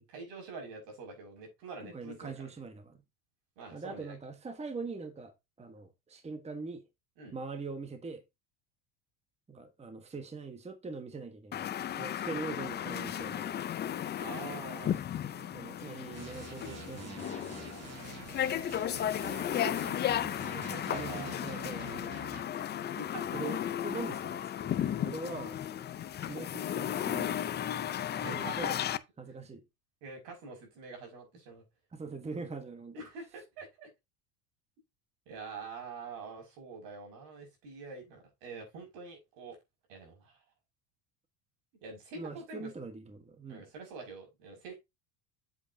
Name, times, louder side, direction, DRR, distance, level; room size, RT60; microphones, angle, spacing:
voice 1, 0.1-2.5 3.6-4.2 7.2-7.3 14.2-15.0 20.5-21.4 22.8-23.4 28.2-28.6 30.0-31.6 32.9-33.9 35.3-39.6 39.9-40.4 41.8-42.7 43.5-44.8, right 4 dB, 75° right, 5.7 m, -45 dB
voice 2, 1.8-3.0 3.7-6.8 7.3-8.2 9.5-13.7 15.3-17.6 19.4-19.8 20.9-22.2 23.3-25.6 26.2-27.5 27.8-28.8 29.2-29.6 31.9-32.9 42.1-43.7, right 4 dB, 15° right, 1.2 m, -43 dB
sound 1, 11.5-29.0, left 10 dB, 25° left, 0.4 m, -35 dB
sound 2, 16.1-22.4, right 4 dB, 30° right, 2.4 m, -46 dB
8.0 x 8.0 x 2.7 m
supercardioid pair, 115°, 49 cm